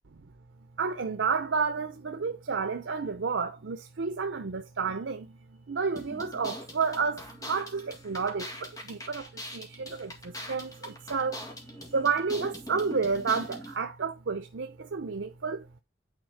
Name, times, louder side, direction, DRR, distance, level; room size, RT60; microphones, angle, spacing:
voice 1, 0.8-5.3 5.7-11.4 11.9-15.6, right 5 dB, 90° right, 0.6 m, -31 dB
sound 1, 6.0-13.8, equal, 20° left, 1.8 m, -42 dB
9.0 x 4.1 x 4.5 m
head